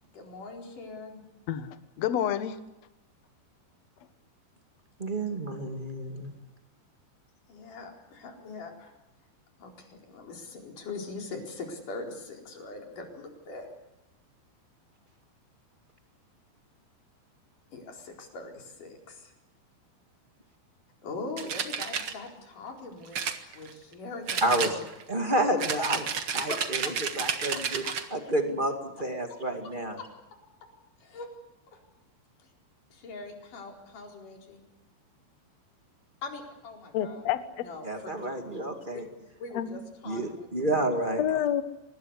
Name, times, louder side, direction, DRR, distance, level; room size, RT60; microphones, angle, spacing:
voice 1, 0.0-1.2 7.5-8.9 9.6-13.7 17.7-19.3 21.0-23.2 23.5-24.8 26.5-26.6 27.2-27.3 27.5-27.9 30.0-30.1 31.0-31.3 31.7-31.8 32.4-32.5 32.9-34.6 36.2-37.3 37.6-38.3 38.9-39.0 39.4-40.5 41.3-41.4, left 3 dB, 50° left, 2 dB, 5.7 m, -42 dB
voice 2, 1.5-2.6 36.9-37.6 39.5-39.8 41.2-41.6, left 10 dB, 65° left, 10 dB, 1.7 m, -28 dB
voice 3, 5.0-6.3 24.4-24.8 25.1-26.0 26.3-26.8 27.2-27.8 28.1-30.0 37.8-39.0 40.0-41.2, right 1 dB, 35° right, 4 dB, 0.8 m, -29 dB
sound 1, 21.4-22.1 23.1-23.9 24.3-25.1 25.6-28.1, right 6 dB, 60° right, 1.4 m, -31 dB
25.0 x 20.5 x 8.2 m, 0.94 s
omnidirectional pair, 5.0 m